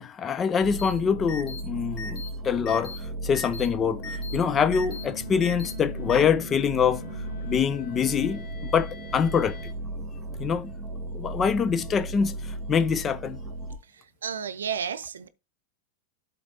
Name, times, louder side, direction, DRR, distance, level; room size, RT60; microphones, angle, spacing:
voice 1, 0.0-3.0 3.2-7.0 7.4-9.7 10.4-10.8 11.1-12.3 12.7-13.4, left 7 dB, 30° left, 0.5 m, -25 dB
sound 1, 0.6-13.8, right 2 dB, 30° right, 2.1 m, -36 dB
sound 2, 0.8-0.9 1.3-1.6 2.0-2.3 2.7-3.0 3.3-3.7 4.0-4.4 4.7-5.0 5.4-5.7 6.1-6.2, left 4 dB, 45° left, 2.8 m, -38 dB
sound 3, 3.4-9.7, left 5 dB, 65° left, 2.3 m, -44 dB
voice 2, 14.2-15.3, right 7 dB, 90° right, 0.6 m, -31 dB
11.5 x 4.1 x 2.8 m
hypercardioid pair, 105°, 0 cm